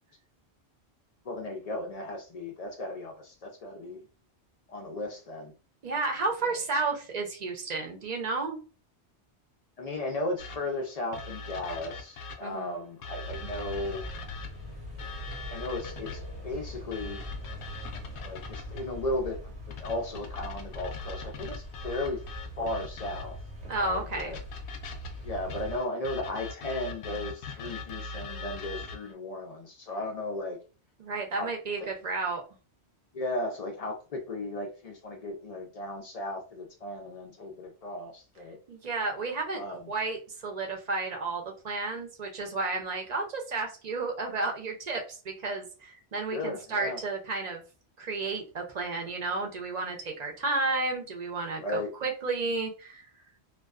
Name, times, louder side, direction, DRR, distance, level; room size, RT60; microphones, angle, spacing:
voice 1, 1.2-4.0 4.7-5.5 6.5-6.6 9.8-14.0 15.5-17.2 18.2-22.2 22.6-23.4 23.6-24.4 25.2-30.6 31.3-31.5 31.8-31.9 33.1-38.6 39.5-39.9 46.3-47.0 51.6-51.9, left 2 dB, 55° left, 2 dB, 0.4 m, -35 dB
voice 2, 5.8-8.6 12.4-12.8 23.7-24.4 31.0-32.4 38.7-39.6 39.9-47.6 48.0-53.1, right 3 dB, 50° right, 2 dB, 0.6 m, -32 dB
sound 1, 10.4-12.6 13.0-16.4 16.9-19.0 19.7-23.5 24.2-29.1, left 3 dB, 85° left, 0.8 m, -42 dB
sound 2, 13.2-25.8, equal, 80° right, 1.0 m, -42 dB
2.3 x 2.2 x 2.3 m, 0.35 s
omnidirectional pair, 1.1 m